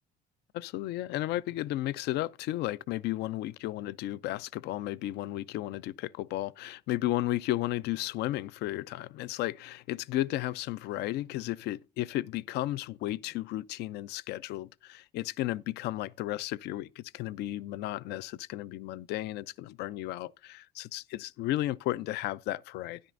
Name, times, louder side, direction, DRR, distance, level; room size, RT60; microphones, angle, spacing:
voice 1, 0.5-23.0, left 15 dB, 80° left, 0.4 m, -34 dB
12.5 x 10.5 x 2.5 m
cardioid pair, 110°, 17 cm